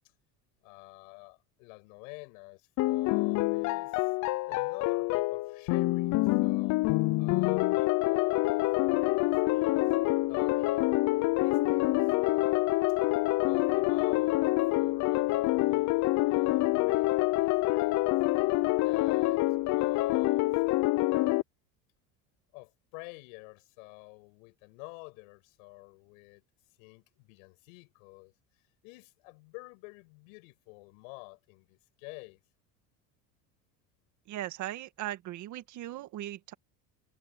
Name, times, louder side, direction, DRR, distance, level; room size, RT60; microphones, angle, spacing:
voice 1, 0.6-4.1 4.5-6.8 7.2-12.7 13.5-14.5 14.7-18.1 18.8-20.5 22.5-26.4 26.8-28.3 28.8-32.4, left 32 dB, 85° left, 6.8 m, -49 dB
sound 1, 2.8-21.4, left 20 dB, 50° left, 0.6 m, -26 dB
sound 2, 8.6-20.9, right 32 dB, 80° right, 7.1 m, -61 dB
voice 2, 34.3-36.5, right 14 dB, 50° right, 1.8 m, -38 dB
cardioid pair, 135°, 38 cm